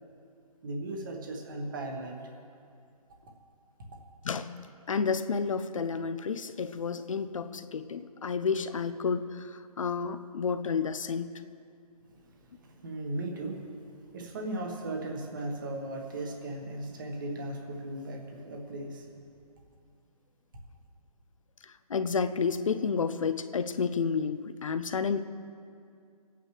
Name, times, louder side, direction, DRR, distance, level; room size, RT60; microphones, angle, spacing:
voice 1, 0.6-2.2 12.8-13.6 14.1-19.1, right 2 dB, 30° right, 1 dB, 1.4 m, -36 dB
voice 2, 4.9-11.3 21.6-25.2, left 5 dB, 55° left, 11 dB, 0.5 m, -30 dB
26.0 x 9.0 x 3.3 m, 2.4 s
hypercardioid pair, 170°, 20 cm